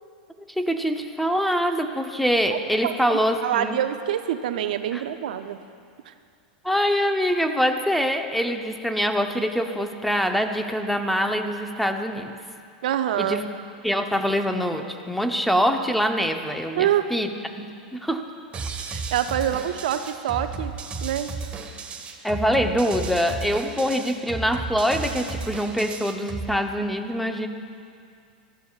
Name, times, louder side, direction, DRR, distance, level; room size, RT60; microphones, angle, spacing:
voice 1, 0.5-3.8 4.9-5.0 6.6-12.4 13.2-13.4 13.8-17.3 17.6-17.7 17.9-18.3 22.2-27.5, equal, ahead, 5 dB, 0.8 m, -24 dB
voice 2, 2.8-5.6 6.1-6.2 12.8-13.4 16.8-17.1 18.9-20.7 21.0-21.3, right 11 dB, 70° right, 9 dB, 0.6 m, -26 dB
sound 1, 18.5-26.5, right 4 dB, 30° right, 1.2 m, -34 dB
18.5 x 13.5 x 2.4 m, 2.3 s
hypercardioid pair, 105°, 5 cm